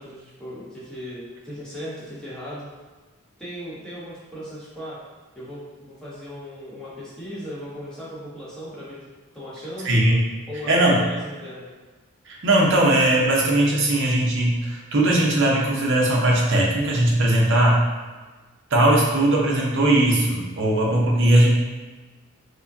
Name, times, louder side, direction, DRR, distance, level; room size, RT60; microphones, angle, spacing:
voice 1, 0.0-2.7 3.4-5.0 5.3-9.0 9.3-10.0 10.5-11.7, equal, 5° left, -10 dB, 1.0 m, -37 dB
voice 2, 9.8-10.2 10.7-11.0 12.3-17.8 18.7-21.5, right 1 dB, 55° right, -2 dB, 0.7 m, -19 dB
5.0 x 2.2 x 2.7 m, 1.3 s
head